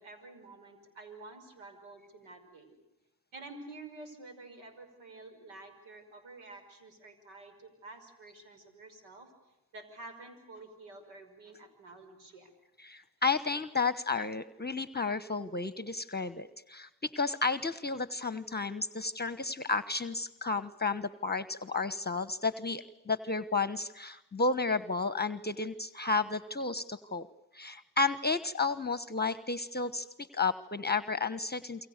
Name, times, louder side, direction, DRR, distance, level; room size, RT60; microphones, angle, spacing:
voice 1, 0.0-2.8 3.3-9.3 9.7-12.5, right 2 dB, 85° right, 9 dB, 5.9 m, -50 dB
voice 2, 12.8-27.3 27.5-31.9, left 3 dB, 20° left, 14 dB, 1.2 m, -32 dB
29.0 x 24.0 x 6.7 m, 0.96 s
supercardioid pair, 55°, 47 cm